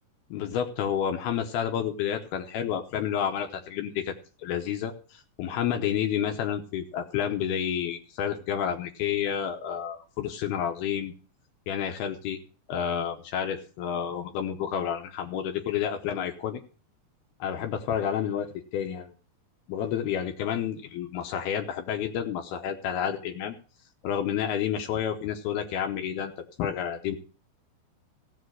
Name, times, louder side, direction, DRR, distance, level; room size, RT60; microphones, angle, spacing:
voice 1, 0.3-4.1 4.4-11.1 11.7-12.4 12.7-16.6 17.4-19.1 19.7-23.6 24.0-26.3 26.6-27.2, left 9 dB, 75° left, 4 dB, 2.8 m, -30 dB
16.0 x 7.4 x 6.2 m, 0.38 s
omnidirectional pair, 4.7 m